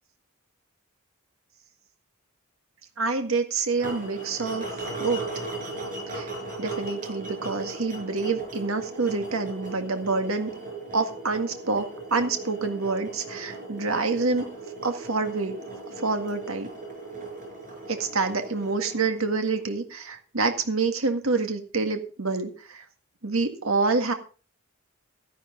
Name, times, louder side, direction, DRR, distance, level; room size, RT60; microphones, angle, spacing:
voice 1, 3.0-4.7 5.0-5.2 6.1-6.3 6.6-10.5 10.9-14.4 14.8-15.6 16.0-16.7 17.9-22.9 23.2-24.1, right 4 dB, 80° right, 6 dB, 1.9 m, -27 dB
sound 1, 3.8-19.9, right 2 dB, 40° right, 5.4 m, -38 dB
13.0 x 11.0 x 3.9 m, 0.37 s
head